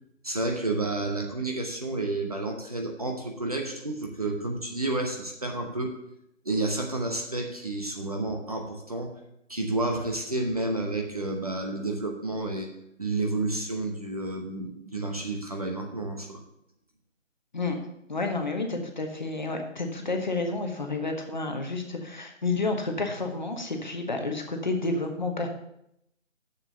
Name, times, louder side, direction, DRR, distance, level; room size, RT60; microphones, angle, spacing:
voice 1, 0.2-6.0 6.4-9.1 9.5-12.7 13.0-16.4, right 2 dB, 30° right, 2 dB, 0.9 m, -30 dB
voice 2, 18.1-25.5, left 3 dB, 35° left, 4 dB, 1.0 m, -30 dB
7.1 x 6.6 x 6.7 m, 0.79 s
figure-of-eight pair, 165°, 39 cm